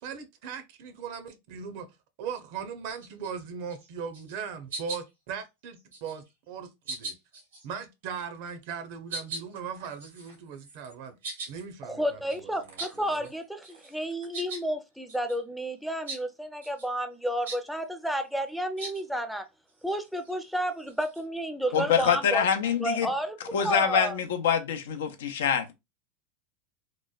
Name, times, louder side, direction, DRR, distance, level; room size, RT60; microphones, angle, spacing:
voice 1, 0.0-1.9 2.2-7.1 7.6-11.2 11.5-13.3, right 6 dB, 60° right, 0.6 m, -39 dB
sound 1, 2.9-3.3 3.7-3.9 4.1-4.4 4.7-5.3 5.7-6.3 6.8-7.7 8.5-8.7 9.1-13.4 13.6-14.7 15.1-15.4 16.1-16.2 16.6-16.9 17.4-17.6 18.8-19.0 19.7-21.2, right 3 dB, 90° right, 1.1 m, -41 dB
voice 2, 11.8-19.5 19.8-22.4 22.8-23.4 23.6-24.2, equal, ahead, 0.5 m, -31 dB
voice 3, 21.7-23.1 23.5-25.7, left 7 dB, 80° left, 0.5 m, -25 dB
2.9 x 2.0 x 2.3 m
hypercardioid pair, 105°, 0 cm